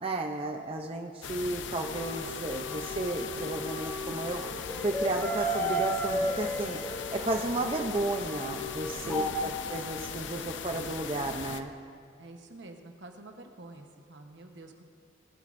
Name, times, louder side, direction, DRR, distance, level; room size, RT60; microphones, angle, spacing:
voice 1, 0.0-4.4 4.8-6.8 7.1-11.7, right 2 dB, 30° right, 3 dB, 0.5 m, -33 dB
sound 1, 1.2-11.6, left 6 dB, 75° left, 0.6 m, -39 dB
sound 2, 1.8-9.3, equal, 15° left, 2.8 m, -35 dB
voice 2, 9.0-9.4 12.2-14.8, right 2 dB, 70° right, 4 dB, 1.1 m, -48 dB
19.0 x 12.0 x 2.6 m, 2.3 s
head